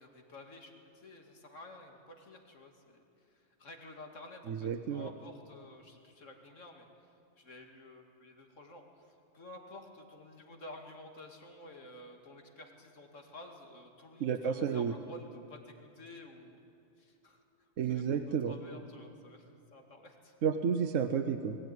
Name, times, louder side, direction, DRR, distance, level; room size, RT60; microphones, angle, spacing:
voice 1, 0.0-16.6 17.0-17.4 17.8-20.3, left 2 dB, 75° left, 3 dB, 2.7 m, -52 dB
voice 2, 4.5-5.1 14.2-14.9 17.8-18.5 20.4-21.6, right 7 dB, 85° right, 7 dB, 1.2 m, -31 dB
21.0 x 16.5 x 9.6 m, 2.7 s
omnidirectional pair, 1.3 m